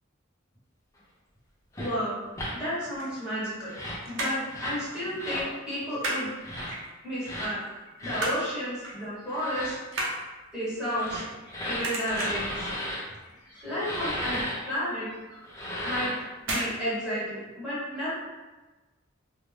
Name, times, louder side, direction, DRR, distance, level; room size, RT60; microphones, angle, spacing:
sound 1, 1.7-1.9 2.3-2.5 3.6-4.0 4.5-4.8 5.2-5.5 6.4-6.7 7.2-7.5 8.0-8.3 9.3-9.7 10.8-13.0 13.8-14.6 15.4-16.2, left 1 dB, 15° left, 0.5 m, -35 dB
voice 1, 1.8-2.1 2.5-3.7 4.1-6.7 7.0-7.6 8.0-9.8 10.5-11.2 11.6-12.7 13.4-15.4 15.8-16.1 16.5-18.1, equal, 5° right, -11 dB, 1.1 m, -32 dB
sound 2, 2.8-3.8 4.0-4.5 4.9-5.1 5.4-6.2 6.7-7.2 7.7-8.5 8.8-9.1 9.4-11.5 11.8-12.5 13.0-13.3 13.6-13.7 14.0-14.1 14.6-14.7 15.5-15.8 16.4-16.7 17.0-17.1, right 1 dB, 70° right, 0.6 m, -33 dB
2.5 x 2.1 x 3.2 m, 1.2 s
head